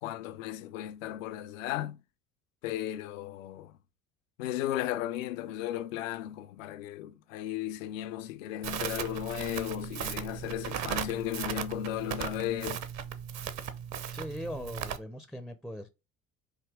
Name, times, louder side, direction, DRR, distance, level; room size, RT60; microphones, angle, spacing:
voice 1, 0.0-2.0 2.6-3.7 4.4-12.8, left 12 dB, 65° left, 0.6 m, -35 dB
Crackle, 8.6-15.0, right 9 dB, 40° right, 0.7 m, -37 dB
voice 2, 14.1-15.9, equal, ahead, 0.5 m, -40 dB
5.0 x 2.8 x 3.5 m
figure-of-eight pair, 55°, 42 cm